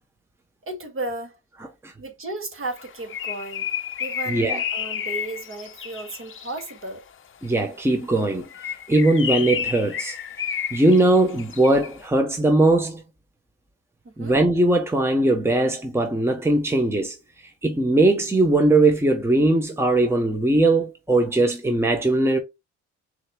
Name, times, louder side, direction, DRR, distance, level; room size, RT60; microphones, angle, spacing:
voice 1, 0.7-1.4 2.0-3.7 4.0-7.0 14.0-14.4, right 2 dB, 45° right, 2.1 m, -34 dB
Bird, 2.7-6.8 8.4-12.0, left 8 dB, 40° left, 0.8 m, -31 dB
voice 2, 4.3-4.6 7.4-10.2 10.7-13.0 14.2-17.2 17.6-22.4, right 2 dB, 10° right, 1.1 m, -20 dB
6.3 x 3.4 x 2.3 m
cardioid pair, 90°, 30 cm